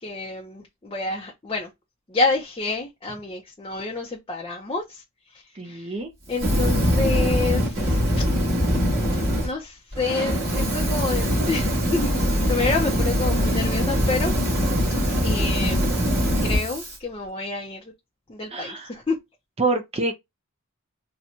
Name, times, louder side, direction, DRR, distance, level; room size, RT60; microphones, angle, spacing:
voice 1, 0.0-1.7 2.1-5.0 5.3-6.0 6.3-8.2 9.4-14.3 15.2-16.0 16.4-17.9 18.3-19.2, left 3 dB, 25° left, 0.6 m, -28 dB
voice 2, 5.6-6.1 18.5-18.9 19.6-20.1, right 3 dB, 30° right, 0.5 m, -26 dB
Fire, 6.3-9.5 9.9-17.0, equal, 50° right, 2.0 m, -22 dB
4.3 x 2.2 x 2.6 m
head